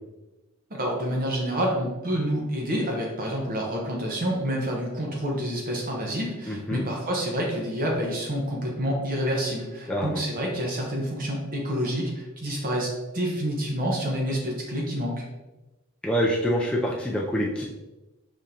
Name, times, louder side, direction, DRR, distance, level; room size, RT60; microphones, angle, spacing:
voice 1, 0.7-15.2, equal, 40° right, -1 dB, 0.8 m, -28 dB
voice 2, 6.5-6.8 9.9-10.2 16.0-17.6, equal, 5° left, -4 dB, 0.4 m, -26 dB
5.1 x 3.6 x 2.8 m, 1.1 s
head